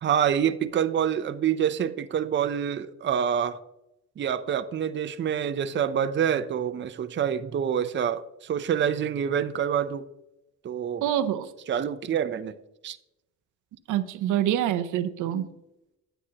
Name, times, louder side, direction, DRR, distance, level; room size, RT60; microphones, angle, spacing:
voice 1, 0.0-3.6 4.2-10.1 10.6-11.0 11.7-12.5 12.8-13.0, right 8 dB, 40° right, 10 dB, 0.6 m, -26 dB
voice 2, 11.0-11.5 13.9-15.5, right 11 dB, 80° right, 11 dB, 0.7 m, -26 dB
9.6 x 7.9 x 2.8 m, 0.88 s
cardioid pair, 90°, 30 cm